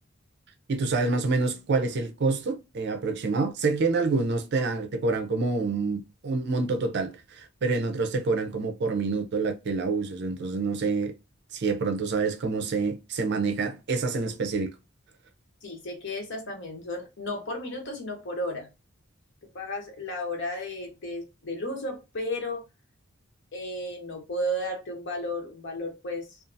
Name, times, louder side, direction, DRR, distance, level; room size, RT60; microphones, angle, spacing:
voice 1, 0.7-11.1 11.5-14.7, right 3 dB, 55° right, 0.5 m, -27 dB
voice 2, 15.6-18.7 19.5-22.6 23.5-26.4, left 1 dB, 60° left, 0.9 m, -33 dB
2.5 x 2.4 x 2.5 m
head